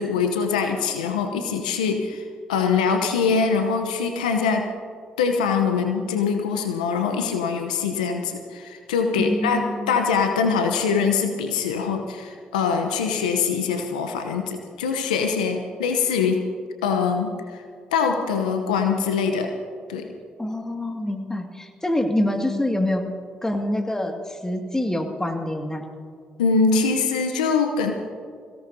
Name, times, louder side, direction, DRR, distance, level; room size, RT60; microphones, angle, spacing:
voice 1, 0.0-2.2 2.5-4.7 5.2-16.5 16.8-17.6 17.9-19.5 19.9-20.1 26.4-27.9, left 5 dB, 90° left, 5 dB, 0.9 m, -23 dB
voice 2, 9.2-10.0 20.4-23.1 23.4-25.8, left 1 dB, 15° left, 3 dB, 2.2 m, -26 dB
23.0 x 17.0 x 2.8 m, 2.1 s
hypercardioid pair, 45°, 4 cm